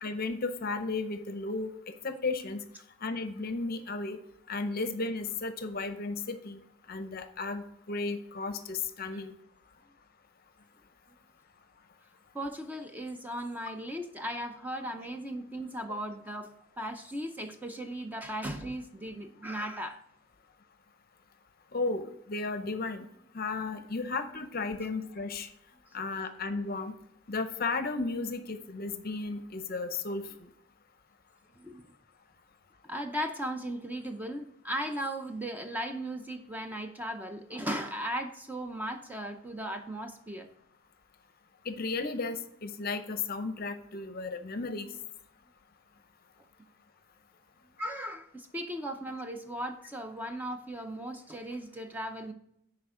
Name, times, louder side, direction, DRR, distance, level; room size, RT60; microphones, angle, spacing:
voice 1, 0.0-1.7 2.0-2.7 3.0-4.2 4.5-6.6 6.9-9.3 21.7-23.1 23.3-25.5 25.9-26.9 27.3-30.3 41.7-44.9, left 3 dB, 45° left, 9 dB, 0.6 m, -34 dB
voice 2, 12.3-20.0 31.6-31.8 32.8-40.5 47.8-52.3, right 1 dB, 10° right, 5 dB, 0.5 m, -37 dB
10.5 x 4.4 x 3.7 m, 0.76 s
head